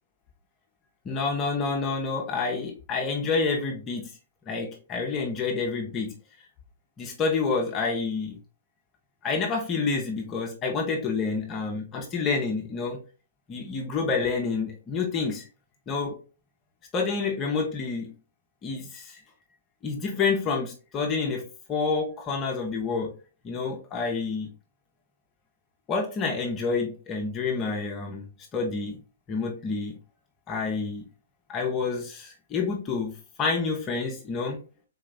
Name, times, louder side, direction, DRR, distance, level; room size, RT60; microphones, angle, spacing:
voice 1, 1.0-4.1 4.5-6.1 7.0-8.4 9.2-13.0 13.5-15.5 15.9-16.2 16.9-18.1 18.6-19.2 19.8-23.1 23.4-24.5 25.9-28.3 28.5-29.0 29.3-30.0 30.5-31.0 31.5-34.6, left 4 dB, 25° left, 1 dB, 0.9 m, -28 dB
4.2 x 2.9 x 3.7 m, 0.34 s
hypercardioid pair, 130°, 0 cm